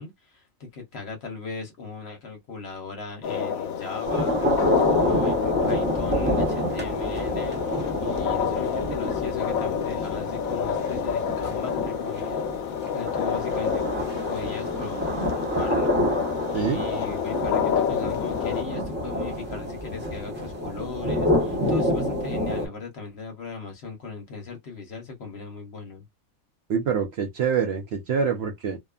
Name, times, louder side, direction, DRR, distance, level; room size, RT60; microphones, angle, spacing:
voice 1, 0.0-4.4 4.8-7.6 8.0-13.9 14.3-15.0 15.3-16.0 16.5-26.0, left 4 dB, 55° left, 1.0 m, -38 dB
sound 1, 3.2-18.6, left 8 dB, 85° left, 1.0 m, -29 dB
sound 2, 4.0-22.7, left 1 dB, 10° right, 0.8 m, -28 dB
voice 2, 16.5-16.9 26.7-28.8, right 6 dB, 65° right, 0.7 m, -25 dB
2.6 x 2.2 x 2.3 m
omnidirectional pair, 1.4 m